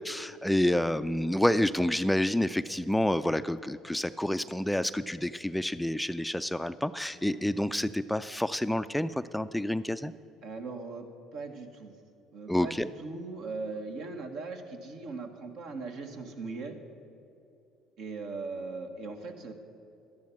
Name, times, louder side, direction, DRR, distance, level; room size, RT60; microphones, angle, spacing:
voice 1, 0.0-10.1 12.5-12.9, left 1 dB, 5° left, 13 dB, 0.4 m, -28 dB
voice 2, 10.4-11.1 11.3-11.9 12.3-16.8 18.0-19.5, right 3 dB, 65° right, 4 dB, 1.5 m, -39 dB
12.5 x 10.5 x 5.9 m, 2.8 s
hypercardioid pair, 65°, 0 cm